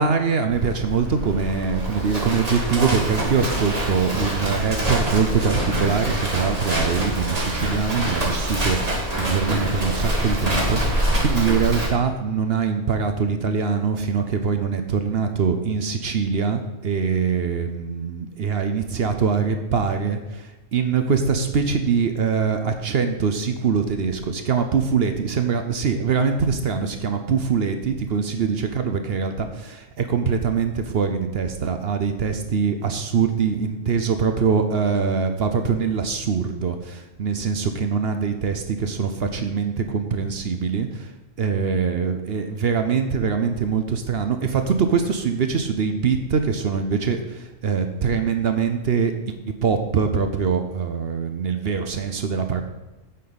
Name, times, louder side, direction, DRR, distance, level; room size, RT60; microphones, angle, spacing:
voice 1, 0.0-41.1 41.4-49.4 49.6-52.6, right 6 dB, 50° right, 7 dB, 0.8 m, -23 dB
Livestock farm animals working animals, 0.5-11.9, right 1 dB, 25° right, 1.7 m, -25 dB
9.0 x 7.8 x 4.1 m, 1.1 s
omnidirectional pair, 1.5 m